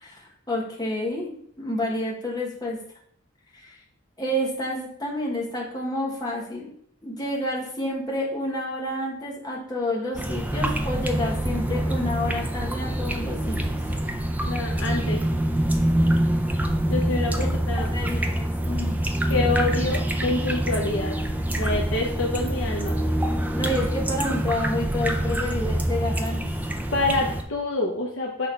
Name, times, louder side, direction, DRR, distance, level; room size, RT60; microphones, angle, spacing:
voice 1, 0.5-2.8 3.5-3.8 4.2-6.7 7.0-13.6 17.9-18.9 23.5-26.4, left 1 dB, 20° left, -2 dB, 1.2 m, -29 dB
sound 1, 10.1-27.4, right 1 dB, 10° right, 0.4 m, -25 dB
voice 2, 14.5-15.2 16.9-17.9 19.3-21.2 21.6-23.0 26.9-28.5, left 2 dB, 65° left, -1 dB, 0.8 m, -26 dB
6.2 x 3.7 x 4.4 m, 0.66 s
head